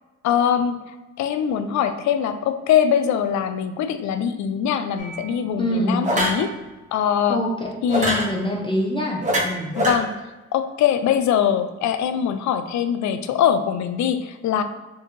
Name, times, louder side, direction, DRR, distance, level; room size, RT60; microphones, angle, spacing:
voice 1, 0.2-0.8 1.2-6.5 6.9-7.4 7.8-8.3 9.8-10.1 10.5-14.6, left 8 dB, 65° left, 9 dB, 0.5 m, -22 dB
sound 1, 5.0-5.2 6.0-6.4 7.9-8.3 9.2-10.0, equal, 25° right, 1.1 m, -22 dB
voice 2, 5.6-6.1 7.3-7.5 7.9-9.8, equal, 15° left, -2 dB, 0.7 m, -25 dB
4.6 x 2.6 x 3.1 m, 1.1 s
cardioid pair, 90°, 30 cm